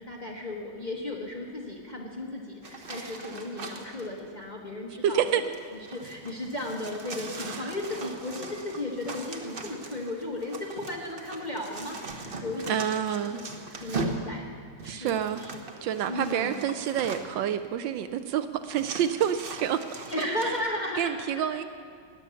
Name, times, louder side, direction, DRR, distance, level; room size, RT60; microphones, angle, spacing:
voice 1, 0.0-5.4 5.9-13.4 13.7-14.5 14.8-15.1 15.4-16.6 20.1-21.6, left 1 dB, 25° left, -1 dB, 1.1 m, -35 dB
sound 1, 2.6-4.1 5.1-17.5 18.2-18.3 18.7-20.6, right 3 dB, 40° right, 0.8 m, -40 dB
voice 2, 5.0-5.4 7.5-7.7 12.7-13.4 13.7-14.1 14.8-15.4 15.8-19.8 20.2-20.5 21.0-21.6, right 9 dB, 75° right, 10 dB, 1.2 m, -28 dB
19.5 x 7.0 x 7.0 m, 2.1 s
omnidirectional pair, 2.2 m